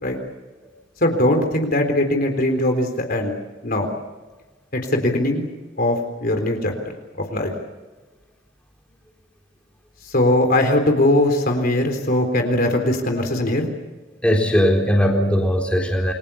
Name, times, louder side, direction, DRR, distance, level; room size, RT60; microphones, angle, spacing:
voice 1, 1.0-3.3 3.6-3.9 4.7-5.5 5.8-6.7 7.3-7.5 10.1-13.7, left 1 dB, 50° left, 4 dB, 3.9 m, -20 dB
voice 2, 14.2-16.1, equal, 5° left, 0 dB, 4.0 m, -19 dB
29.0 x 23.0 x 7.1 m, 1.2 s
head